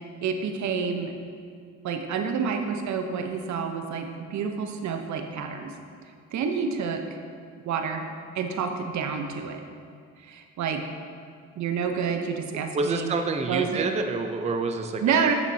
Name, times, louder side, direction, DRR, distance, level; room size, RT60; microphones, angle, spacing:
voice 1, 0.2-1.1 1.8-5.7 6.3-7.0 7.6-8.1 8.3-9.6 10.2-10.8 11.6-13.1 13.5-13.9 15.0-15.3, right 6 dB, 70° right, 5 dB, 0.8 m, -28 dB
voice 2, 12.7-15.2, right 3 dB, 20° right, 6 dB, 0.5 m, -28 dB
9.7 x 7.0 x 2.7 m, 2.2 s
cardioid pair, 90°, 30 cm